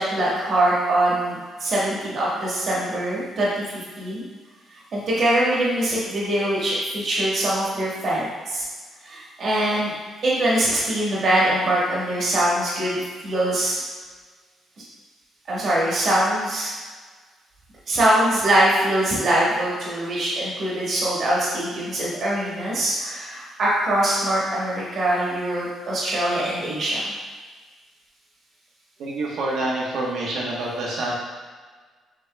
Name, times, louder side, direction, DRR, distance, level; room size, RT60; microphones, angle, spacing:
voice 1, 0.0-3.6 4.0-4.3 4.9-8.6 9.0-9.9 10.2-13.8 15.5-16.7 17.9-27.1, right 1 dB, 55° right, -6 dB, 1.5 m, -23 dB
voice 2, 29.0-31.1, right 2 dB, 75° right, -4 dB, 1.2 m, -27 dB
7.0 x 3.0 x 2.3 m, 1.4 s
cardioid pair, 90°, 0 cm